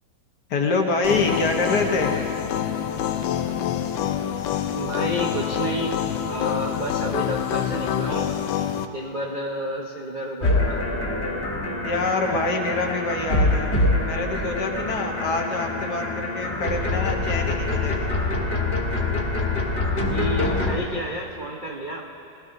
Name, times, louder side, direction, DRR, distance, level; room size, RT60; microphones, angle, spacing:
voice 1, 0.5-2.1 11.8-13.7 14.0-18.1, left 3 dB, 55° left, 2 dB, 1.5 m, -25 dB
sound 1, 1.0-8.9, left 9 dB, 75° left, 1.3 m, -26 dB
voice 2, 4.8-8.3 8.9-10.8 20.1-22.0, equal, 60° right, -2 dB, 0.5 m, -30 dB
sound 2, 10.4-20.7, left 2 dB, 30° left, 1.7 m, -25 dB
21.0 x 16.5 x 2.6 m, 2.9 s
omnidirectional pair, 2.3 m